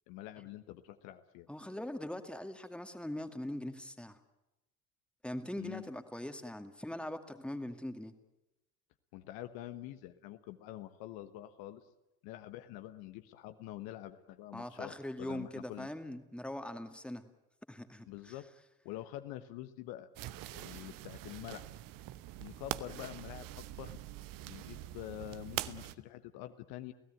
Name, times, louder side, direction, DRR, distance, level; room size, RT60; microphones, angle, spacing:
voice 1, 0.1-1.5 5.6-5.9 9.1-11.9 12.2-15.9 18.1-18.5 18.8-20.1 20.5-21.7 22.4-24.0 24.5-26.9, left 14 dB, 55° left, 9 dB, 1.3 m, -46 dB
voice 2, 1.5-4.2 5.2-8.1 14.5-17.2 17.7-18.3, left 1 dB, ahead, 8 dB, 2.1 m, -41 dB
sound 1, 20.2-26.0, right 15 dB, 50° right, 1.0 m, -44 dB
29.0 x 17.0 x 9.2 m, 0.95 s
figure-of-eight pair, 60°, 43 cm